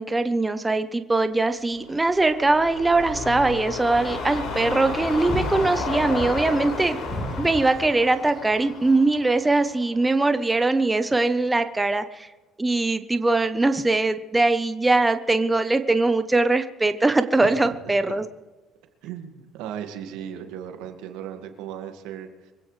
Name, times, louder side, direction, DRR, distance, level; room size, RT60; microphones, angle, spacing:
voice 1, 0.0-7.0 7.4-12.3 12.6-18.2, right 2 dB, 15° right, 9 dB, 0.9 m, -21 dB
sound 1, 1.8-10.2 10.6-10.7, left 3 dB, 65° left, 6.2 m, -32 dB
sound 2, 4.6-9.7, left 1 dB, 30° left, 4.4 m, -36 dB
voice 2, 17.4-18.2 19.0-22.5, right 9 dB, 80° right, 5 dB, 2.0 m, -37 dB
24.5 x 16.0 x 3.3 m, 1.2 s
supercardioid pair, 80°, 0 cm